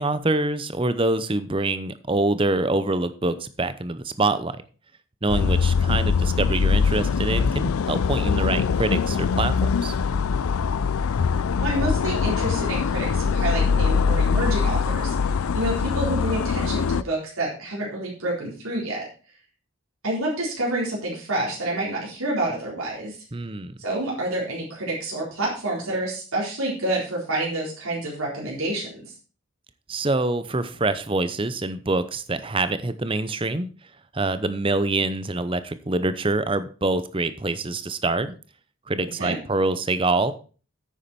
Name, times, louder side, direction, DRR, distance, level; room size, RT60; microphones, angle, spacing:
voice 1, 0.0-4.6 5.2-9.5 9.8-10.0 23.3-23.7 29.9-33.7 34.1-38.4 38.9-40.3, right 2 dB, 25° right, 13 dB, 0.7 m, -25 dB
sound 1, 5.3-17.0, left 5 dB, 90° left, 0.5 m, -22 dB
voice 2, 11.6-19.1 20.0-23.2 23.8-29.1 39.2-39.4, right 1 dB, 80° right, -4 dB, 4.2 m, -28 dB
9.8 x 8.5 x 4.3 m, 0.37 s
head